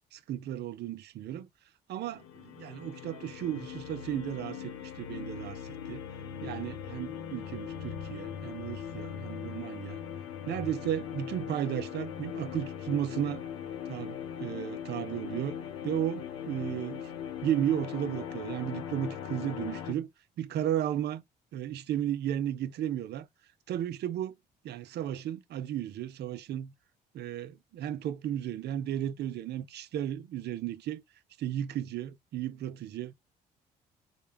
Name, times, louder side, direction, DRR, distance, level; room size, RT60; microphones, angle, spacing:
voice 1, 0.1-1.5 1.9-6.1 6.4-10.0 10.5-13.4 13.9-15.6 15.8-17.1 17.4-20.1 20.4-21.2 21.5-23.3 23.7-24.4 24.6-26.7 27.1-31.0 31.4-33.2, right 11 dB, 55° right, 0.5 m, -34 dB
sound 1, 2.0-19.9, left 8 dB, 70° left, 0.7 m, -40 dB
3.2 x 2.3 x 3.3 m
hypercardioid pair, 50°, 21 cm